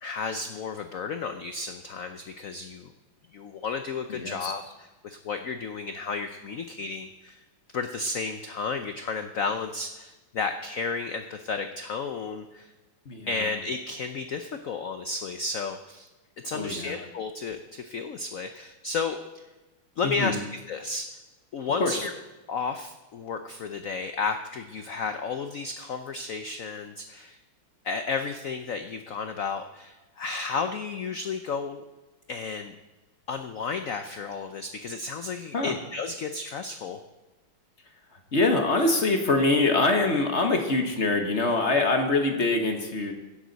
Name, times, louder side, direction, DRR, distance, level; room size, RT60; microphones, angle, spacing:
voice 1, 0.0-2.9 3.3-7.4 7.7-12.7 13.3-16.1 16.4-19.4 20.0-20.4 20.7-21.1 21.5-22.1 22.5-27.4 27.8-31.8 32.3-32.7 33.3-37.0, left 4 dB, 85° left, 7 dB, 0.7 m, -32 dB
voice 2, 4.1-4.5 13.0-13.5 16.5-16.9 20.0-20.4 21.8-22.1 35.5-35.7 38.3-43.1, left 2 dB, 40° left, 4 dB, 1.3 m, -24 dB
16.5 x 11.0 x 4.1 m, 1.1 s
omnidirectional pair, 2.3 m